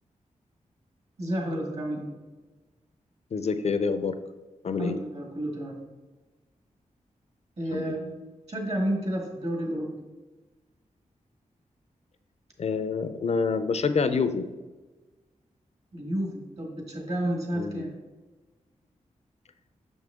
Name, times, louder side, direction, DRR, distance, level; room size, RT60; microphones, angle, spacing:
voice 1, 1.2-2.1 4.8-5.8 7.6-8.0 8.5-9.9 15.9-17.9, right 1 dB, 55° right, 1 dB, 1.8 m, -30 dB
voice 2, 3.3-4.2 4.6-5.0 7.7-7.9 12.6-14.5 17.6-17.9, left 5 dB, 55° left, 10 dB, 0.5 m, -27 dB
6.2 x 5.3 x 3.6 m, 1.2 s
cardioid pair, 75°, 13 cm